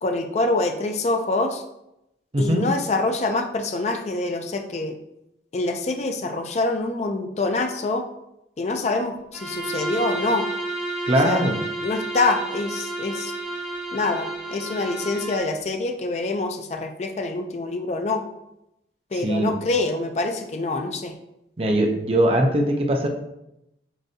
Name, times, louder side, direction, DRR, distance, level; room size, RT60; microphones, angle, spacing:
voice 1, 0.0-1.6 2.4-5.0 5.5-8.1 8.6-10.5 11.2-11.4 11.8-13.3 13.9-18.2 19.1-21.2, left 2 dB, 35° left, 5 dB, 0.3 m, -25 dB
voice 2, 2.3-2.6 11.1-11.6 19.2-19.5 21.6-23.1, right 1 dB, 30° right, 2 dB, 0.6 m, -21 dB
Bowed string instrument, 9.3-15.5, right 2 dB, 5° right, 1.4 m, -31 dB
7.6 x 2.6 x 2.7 m, 0.86 s
head